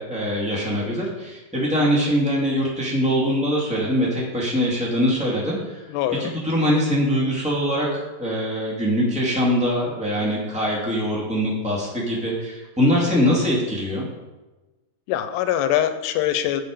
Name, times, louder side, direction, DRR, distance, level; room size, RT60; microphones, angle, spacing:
voice 1, 0.0-5.8 6.2-14.1, equal, 5° right, -5 dB, 0.9 m, -23 dB
voice 2, 5.9-6.3 15.1-16.6, left 11 dB, 90° left, 10 dB, 2.7 m, -23 dB
8.1 x 7.8 x 5.0 m, 1.1 s
omnidirectional pair, 4.7 m